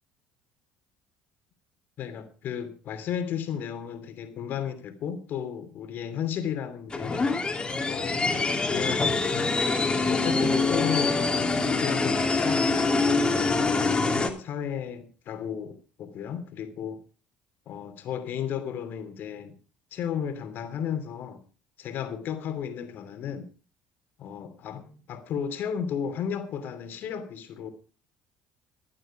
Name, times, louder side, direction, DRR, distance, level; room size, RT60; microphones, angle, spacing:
voice 1, 2.0-7.3 7.9-8.4 8.7-9.6 10.1-11.2 11.7-13.6 14.1-17.0 17.7-19.5 19.9-21.4 21.8-23.5 24.2-27.7, left 8 dB, 60° left, 9 dB, 2.8 m, -34 dB
sound 1, 6.9-14.3, left 3 dB, 25° left, 3.0 m, -25 dB
15.5 x 11.0 x 4.9 m, 0.39 s
hypercardioid pair, 65°, 4 cm